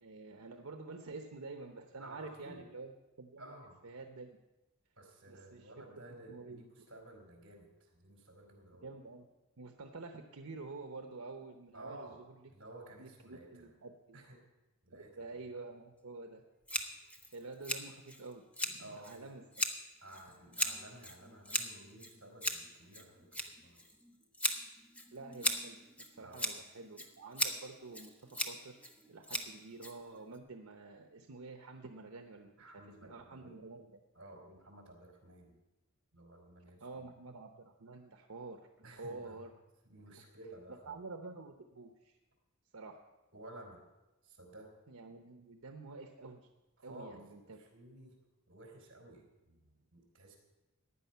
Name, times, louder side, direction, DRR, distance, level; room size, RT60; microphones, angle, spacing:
voice 1, 0.0-2.9 3.2-3.5 3.8-4.4 5.3-5.7 6.0-6.6 8.8-9.3 9.6-12.4 13.0-14.2 14.9-16.4 16.8-16.9 17.3-19.4 25.1-28.8 29.1-32.5 33.0-34.0 36.8-39.5 40.9-42.2 42.7-43.0 44.9-46.4 46.8-47.6, right 3 dB, 85° right, 5 dB, 0.9 m, -48 dB
voice 2, 2.0-2.7 3.4-3.8 5.0-8.9 11.7-12.2 12.5-13.7 14.1-14.4 14.8-15.2 18.8-19.3 20.0-23.9 26.2-26.5 32.6-33.5 34.1-35.6 36.1-37.1 38.8-39.5 39.8-41.0 43.3-43.8 44.2-44.7 46.8-48.2 48.5-50.4, right 1 dB, 55° right, 2 dB, 3.8 m, -54 dB
Scissors, 16.7-30.4, left 1 dB, 5° left, 0.8 m, -39 dB
15.0 x 10.0 x 5.6 m, 1.1 s
head